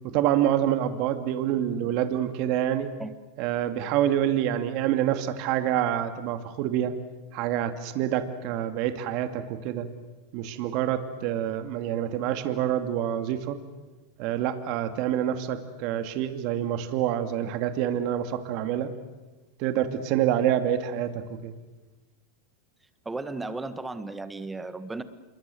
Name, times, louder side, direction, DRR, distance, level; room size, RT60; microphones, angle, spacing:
voice 1, 0.0-2.9 3.4-6.9 7.3-9.9 10.3-13.6 14.2-18.9 19.6-21.5, right 11 dB, 55° right, 8 dB, 2.3 m, -27 dB
voice 2, 23.0-25.0, right 3 dB, 10° right, 11 dB, 1.6 m, -35 dB
27.0 x 22.5 x 7.8 m, 1.2 s
hypercardioid pair, 120°, 0 cm